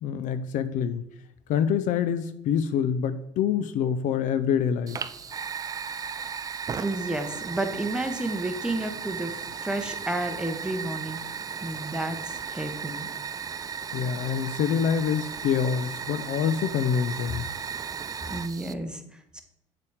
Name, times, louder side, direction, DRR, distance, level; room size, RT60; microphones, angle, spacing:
voice 1, 0.0-1.0 1.5-5.0 13.9-17.4, left 8 dB, 55° left, 12 dB, 0.4 m, -26 dB
Fire, 4.9-18.7, right 6 dB, 25° right, 0.3 m, -36 dB
voice 2, 6.8-11.2 11.6-13.1 18.3-19.4, right 2 dB, 5° right, 6 dB, 0.9 m, -31 dB
6.7 x 3.4 x 4.8 m, 0.78 s
hypercardioid pair, 75°, 16 cm